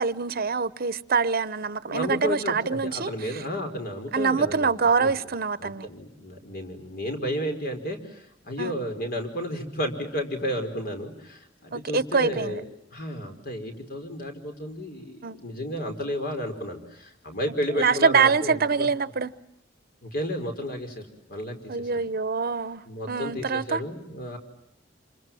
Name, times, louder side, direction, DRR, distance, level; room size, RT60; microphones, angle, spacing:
voice 1, 0.0-3.4 4.1-5.9 8.6-8.8 11.7-12.6 15.2-15.4 17.8-19.3 21.7-22.8 23.1-23.8, right 5 dB, 55° right, 0.9 m, -25 dB
voice 2, 1.9-5.1 5.6-12.6 12.9-18.9 20.0-22.0 22.9-24.4, equal, 55° left, 5.2 m, -32 dB
28.0 x 26.0 x 7.7 m
head